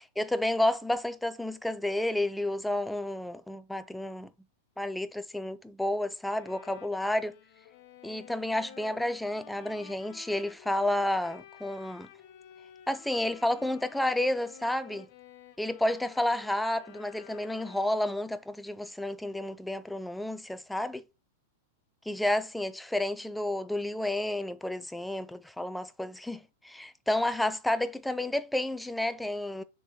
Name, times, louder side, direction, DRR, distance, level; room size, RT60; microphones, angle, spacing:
voice 1, 0.2-4.3 4.8-7.4 8.0-12.1 12.9-15.1 15.6-21.0 22.1-29.6, left 1 dB, 5° left, 0.5 m, -31 dB
Bowed string instrument, 6.3-18.2, left 10 dB, 45° left, 0.9 m, -52 dB
6.5 x 3.8 x 4.2 m
figure-of-eight pair, 95°, 0 cm